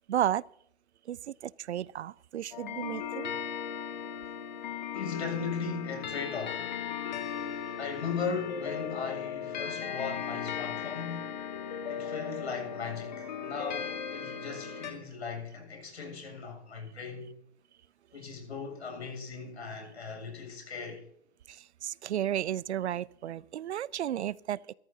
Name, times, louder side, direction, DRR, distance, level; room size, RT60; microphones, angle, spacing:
voice 1, 0.1-0.4 1.1-3.3 21.5-24.6, right 11 dB, 75° right, 0.5 m, -33 dB
sound 1, 2.5-14.9, left 7 dB, 40° left, 1.7 m, -37 dB
voice 2, 4.9-6.7 7.8-11.3 11.9-17.3 18.1-21.0, left 5 dB, 80° left, 7.4 m, -37 dB
21.5 x 14.0 x 2.8 m
hypercardioid pair, 175°, 33 cm